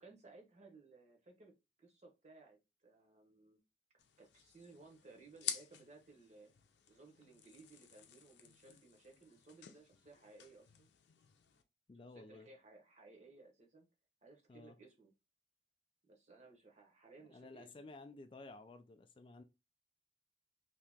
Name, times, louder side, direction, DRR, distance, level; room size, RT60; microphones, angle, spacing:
voice 1, 0.0-1.5 1.8-3.6 4.2-6.5 6.9-10.9 12.1-13.9 14.2-15.1 16.0-17.9, right 3 dB, 40° right, 1.0 m, -60 dB
sound 1, 4.0-11.6, left 9 dB, 90° left, 0.5 m, -50 dB
voice 2, 11.9-12.5 14.5-14.8 17.3-19.4, left 3 dB, 30° left, 0.3 m, -54 dB
2.8 x 2.8 x 3.4 m
head